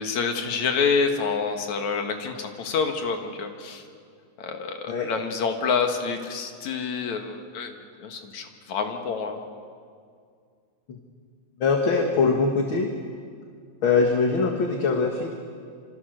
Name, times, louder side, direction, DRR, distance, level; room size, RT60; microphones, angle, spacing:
voice 1, 0.0-3.8 4.4-9.4, left 5 dB, 70° left, 5 dB, 3.1 m, -27 dB
voice 2, 11.6-12.9 13.8-15.3, left 4 dB, 45° left, 2 dB, 2.1 m, -22 dB
27.0 x 26.5 x 6.6 m, 2.2 s
omnidirectional pair, 3.5 m